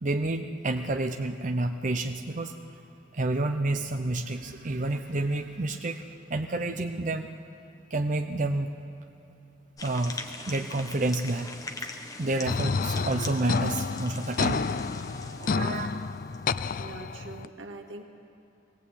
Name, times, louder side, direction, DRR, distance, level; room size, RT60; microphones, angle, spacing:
voice 1, 0.0-2.8 3.1-7.3 7.9-8.8 9.8-14.6 15.4-15.9, right 2 dB, 40° right, 5 dB, 0.7 m, -30 dB
sound 1, 9.8-16.6, left 3 dB, 20° left, 1.2 m, -42 dB
sound 2, 12.5-17.5, left 5 dB, 45° left, 0.4 m, -30 dB
voice 2, 16.8-18.0, right 2 dB, 85° right, 2 dB, 2.0 m, -42 dB
21.0 x 18.0 x 8.4 m, 3.0 s
head